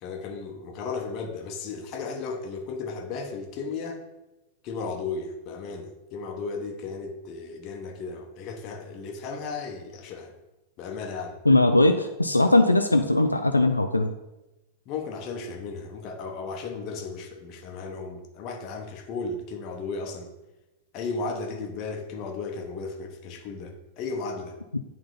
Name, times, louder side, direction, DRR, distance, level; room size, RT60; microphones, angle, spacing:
voice 1, 0.0-4.0 4.6-10.3 10.8-11.4 14.9-20.3 20.9-24.6, left 4 dB, 40° left, 3 dB, 1.1 m, -35 dB
voice 2, 11.4-14.1, left 2 dB, 85° left, 6 dB, 0.4 m, -20 dB
9.0 x 3.8 x 4.1 m, 0.99 s
figure-of-eight pair, 90°, 0 cm